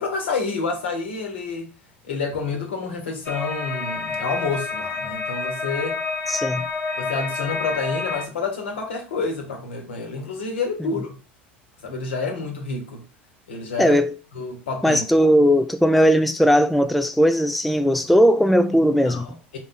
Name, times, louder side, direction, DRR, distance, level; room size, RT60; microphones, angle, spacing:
voice 1, 0.0-1.7 2.0-6.0 7.0-11.1 11.8-13.0 13.5-14.0 14.3-15.0 19.0-19.6, left 4 dB, 70° left, 1.3 m, -28 dB
sound 1, 3.3-8.3, left 4 dB, 30° left, 0.8 m, -28 dB
voice 2, 6.3-6.6 13.8-14.2 14.8-19.3, equal, ahead, 0.3 m, -18 dB
4.6 x 2.6 x 3.9 m
figure-of-eight pair, 80°, 6 cm